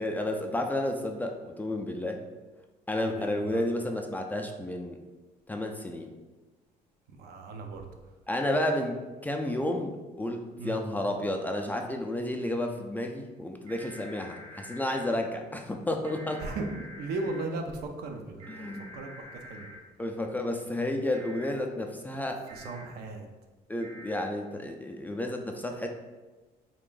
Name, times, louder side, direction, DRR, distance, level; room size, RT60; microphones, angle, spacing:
voice 1, 0.0-2.2 2.9-5.0 5.5-6.1 8.3-16.4 18.5-19.0 20.0-22.4 23.7-25.9, left 1 dB, 10° left, 3 dB, 0.3 m, -31 dB
voice 2, 3.0-3.6 7.1-7.9 10.6-10.8 16.4-19.7 22.5-23.3, right 3 dB, 70° right, 3 dB, 0.6 m, -37 dB
sound 1, 13.7-15.0 16.0-17.4 18.4-19.8 21.1-21.5 22.5-22.8 23.8-24.2, equal, 35° right, 0.7 m, -47 dB
3.6 x 2.5 x 3.8 m, 1.2 s
cardioid pair, 110°, 17 cm